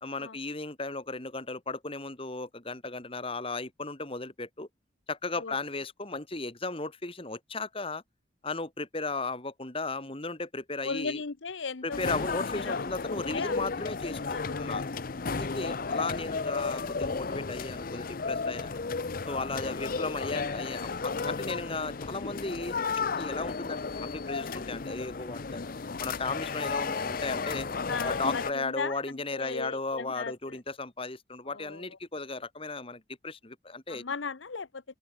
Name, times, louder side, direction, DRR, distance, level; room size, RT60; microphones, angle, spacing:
voice 1, 0.0-4.7 5.1-8.0 8.4-11.2 11.8-14.8 15.4-18.8 19.3-22.9 23.2-25.6 26.0-27.7 28.0-34.0, left 3 dB, 30° left, 2.3 m, -36 dB
voice 2, 10.8-12.2 12.5-13.6 14.3-14.7 15.8-16.0 27.9-30.6 31.5-31.9 33.9-34.8, left 5 dB, 80° left, 0.9 m, -37 dB
sound 1, 11.9-28.5, left 4 dB, 50° left, 0.7 m, -33 dB
open air
head